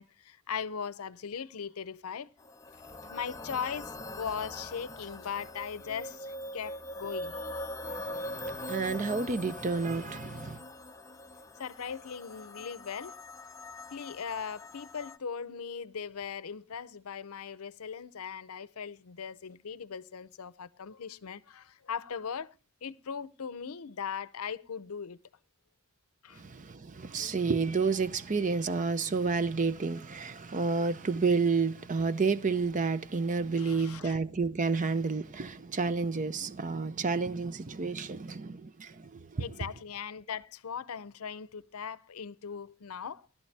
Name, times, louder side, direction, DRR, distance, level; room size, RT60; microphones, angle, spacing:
voice 1, 0.0-2.3 3.0-7.4 11.6-13.1 13.9-22.5 22.8-25.2 26.2-26.4 33.6-34.2 39.4-43.2, left 7 dB, 80° left, 0.6 m, -39 dB
sound 1, 2.4-15.2, left 1 dB, 15° left, 0.6 m, -42 dB
voice 2, 7.9-10.6 26.4-39.5, right 4 dB, 35° right, 0.6 m, -30 dB
16.0 x 12.0 x 3.3 m
head